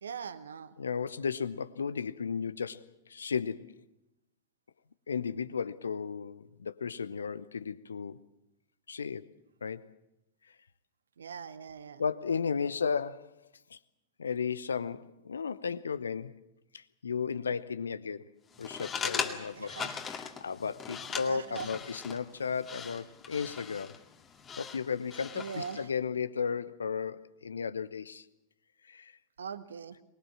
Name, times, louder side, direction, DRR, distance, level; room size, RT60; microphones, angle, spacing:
voice 1, 0.0-0.8 11.2-12.0 19.5-20.0 21.3-21.7 25.3-25.9 29.4-30.0, right 6 dB, 70° right, 0.9 m, -41 dB
voice 2, 0.8-3.8 5.1-8.2 8.9-9.3 9.6-9.9 10.5-10.6 12.0-13.3 13.7-13.8 14.2-16.4 16.7-18.3 18.6-19.8 20.0-24.0 24.6-28.3 28.8-29.2, left 6 dB, 70° left, 0.8 m, -34 dB
sound 1, 18.5-25.9, left 6 dB, 25° left, 2.1 m, -40 dB
24.0 x 21.0 x 7.4 m
figure-of-eight pair, 90°, 0 cm